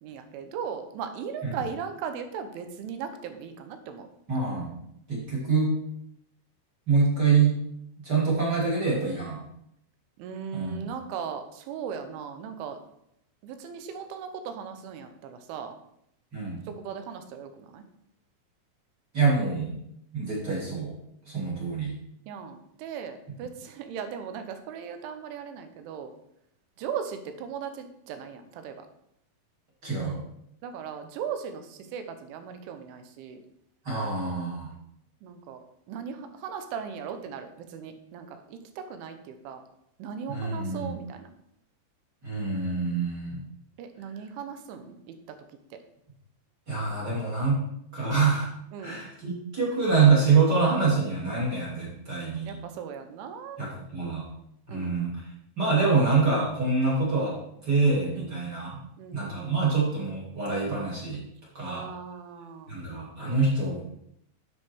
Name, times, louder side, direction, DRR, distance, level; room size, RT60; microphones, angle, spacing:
voice 1, 0.0-4.1 10.2-12.8 13.4-15.8 16.7-17.8 22.3-26.1 26.8-28.9 30.6-33.4 35.2-35.6 35.9-39.6 40.0-41.3 43.8-45.2 45.7-45.8 48.7-49.0 52.5-53.6 54.7-55.0 58.2-58.4 59.0-59.7 61.7-62.7, right 7 dB, 85° right, 8 dB, 3.4 m, -38 dB
voice 2, 4.3-4.7 5.1-5.7 6.9-7.6 8.0-9.4 10.5-10.8 16.3-16.6 19.1-19.7 20.1-20.9 21.3-21.9 29.8-30.2 33.8-34.7 40.3-40.9 42.2-43.4 46.7-47.6 47.9-48.5 48.8-52.5 53.6-54.3 54.7-55.1 55.6-57.4 57.6-58.8 59.1-61.2 61.5-61.8 62.7-63.9, right 4 dB, 30° right, -4 dB, 2.2 m, -25 dB
10.5 x 6.7 x 4.6 m, 0.75 s
omnidirectional pair, 5.4 m